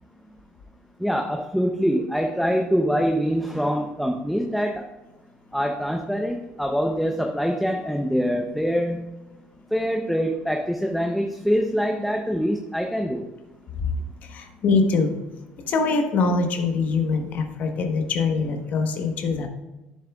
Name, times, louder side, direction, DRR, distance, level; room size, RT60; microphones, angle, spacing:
voice 1, 1.0-4.9 5.5-9.1 9.7-13.3, equal, ahead, 2 dB, 0.6 m, -24 dB
voice 2, 14.3-15.1 15.7-19.5, left 4 dB, 50° left, 5 dB, 1.1 m, -23 dB
10.5 x 7.4 x 2.3 m, 1.1 s
cardioid pair, 125°, 3 cm